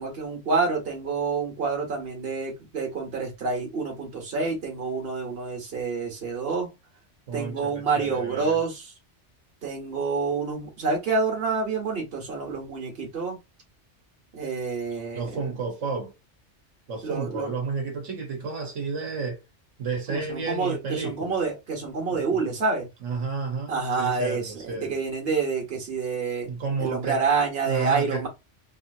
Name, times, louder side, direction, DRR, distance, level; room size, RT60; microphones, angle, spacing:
voice 1, 0.0-6.7 7.3-8.9 9.6-13.4 14.3-15.4 17.0-17.5 20.1-22.9 23.7-26.5 26.8-28.3, right 4 dB, 55° right, 1.4 m, -28 dB
voice 2, 7.3-8.6 15.1-16.1 16.9-19.4 19.8-21.4 22.1-22.4 23.0-25.0 26.5-27.2 27.6-28.3, right 4 dB, 85° right, 1.4 m, -31 dB
3.2 x 2.8 x 2.6 m
omnidirectional pair, 1.2 m